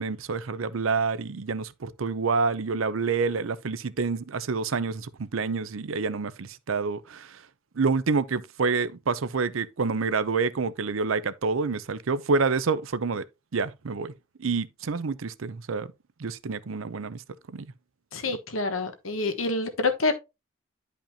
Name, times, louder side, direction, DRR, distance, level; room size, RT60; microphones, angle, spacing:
voice 1, 0.0-7.4 7.8-13.2 13.5-14.1 14.4-15.9 16.2-17.2 17.5-17.7, right 4 dB, 85° right, 0.6 m, -28 dB
voice 2, 18.1-20.1, left 3 dB, 90° left, 1.2 m, -27 dB
10.5 x 5.2 x 2.7 m
head